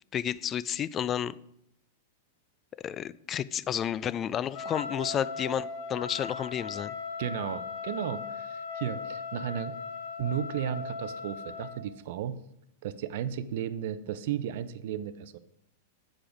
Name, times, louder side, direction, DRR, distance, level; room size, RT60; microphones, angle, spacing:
voice 1, 0.1-1.3 2.8-6.9, left 9 dB, 30° left, 19 dB, 0.3 m, -31 dB
Trumpet, 4.5-11.8, left 5 dB, 60° left, 1.2 m, -38 dB
voice 2, 7.2-9.8 10.2-12.4 12.8-15.4, right 9 dB, 60° right, 14 dB, 0.5 m, -34 dB
7.5 x 4.9 x 5.0 m, 0.77 s
hypercardioid pair, 110°, 0 cm